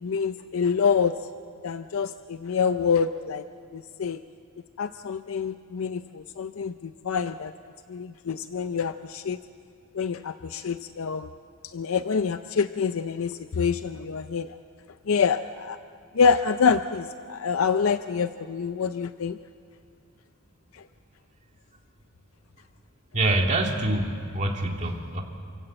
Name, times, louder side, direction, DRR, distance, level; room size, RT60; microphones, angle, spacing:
voice 1, 0.0-1.1 1.6-3.4 3.7-4.2 4.8-7.5 7.9-9.4 9.9-11.3 11.6-14.6 15.1-15.8 16.1-19.4 20.7-20.8, left 6 dB, 85° left, 11 dB, 0.5 m, -26 dB
voice 2, 23.1-25.2, right 2 dB, 35° right, 1 dB, 2.2 m, -25 dB
27.5 x 16.5 x 8.0 m, 2.3 s
head